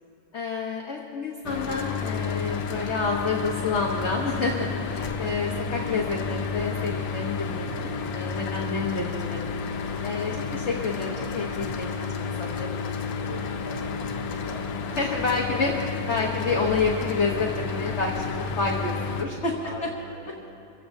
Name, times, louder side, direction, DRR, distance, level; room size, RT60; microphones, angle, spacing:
voice 1, 0.3-9.6 10.0-12.7 14.9-15.7 16.1-19.5, left 4 dB, 45° left, -1 dB, 1.2 m, -29 dB
Mechanical fan, 1.4-19.2, left 5 dB, 75° left, 1.6 m, -31 dB
voice 2, 12.5-15.0 19.6-20.5, equal, 5° right, -4 dB, 3.9 m, -43 dB
25.5 x 16.0 x 2.7 m, 2.7 s
omnidirectional pair, 2.0 m